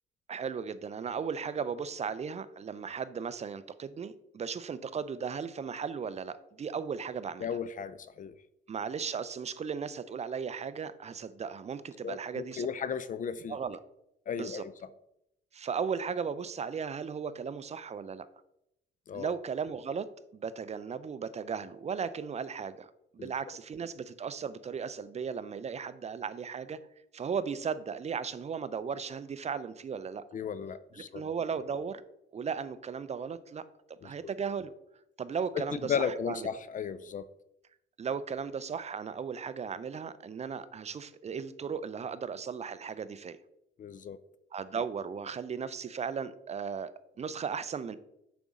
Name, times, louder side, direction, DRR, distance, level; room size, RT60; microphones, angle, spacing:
voice 1, 0.3-7.5 8.7-12.7 13.5-13.8 14.4-14.6 15.5-18.3 19.1-20.1 20.3-26.8 27.1-30.2 30.9-32.0 32.3-34.7 35.2-36.5 38.0-43.4 44.5-46.9 47.2-48.0, right 6 dB, 35° right, 15 dB, 0.5 m, -36 dB
voice 2, 7.4-8.3 12.0-13.6 14.3-14.7 19.1-19.3 23.2-23.3 30.3-31.2 34.0-34.1 35.9-37.3 43.8-44.2, left 7 dB, 40° left, 15 dB, 0.4 m, -35 dB
6.8 x 5.2 x 3.7 m, 0.81 s
cardioid pair, 90°, 20 cm